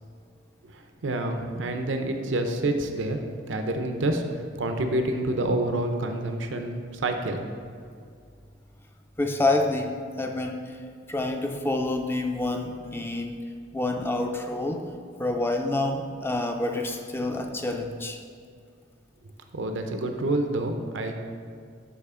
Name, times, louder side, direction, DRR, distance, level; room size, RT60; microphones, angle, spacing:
voice 1, 0.6-7.4 19.5-21.1, right 1 dB, 80° right, 5 dB, 0.6 m, -28 dB
voice 2, 9.2-10.8 11.1-13.4 13.7-14.9 15.2-18.2, left 2 dB, 10° left, 4 dB, 0.4 m, -28 dB
11.0 x 4.1 x 3.7 m, 2.2 s
head